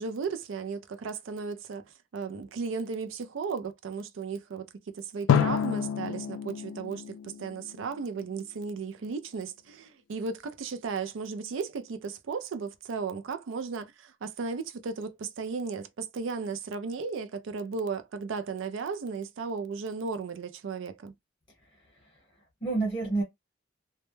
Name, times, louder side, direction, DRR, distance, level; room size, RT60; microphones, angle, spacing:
voice 1, 0.0-1.8 2.1-21.1, right 5 dB, 75° right, 0.4 m, -35 dB
Drum, 5.3-8.2, left 8 dB, 90° left, 0.3 m, -28 dB
voice 2, 21.7-22.2 22.6-23.2, right 3 dB, 20° left, 0.9 m, -30 dB
2.1 x 2.1 x 3.0 m
head